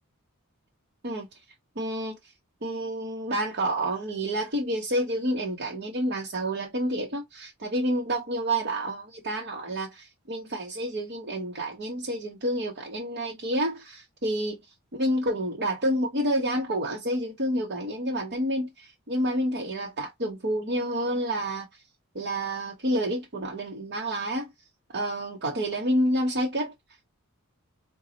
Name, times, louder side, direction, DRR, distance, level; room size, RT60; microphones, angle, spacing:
voice 1, 1.8-2.2 2.6-14.6 14.9-21.7 22.1-24.5 24.9-26.7, right 1 dB, 50° right, 0.9 m, -29 dB
5.0 x 2.2 x 2.7 m
head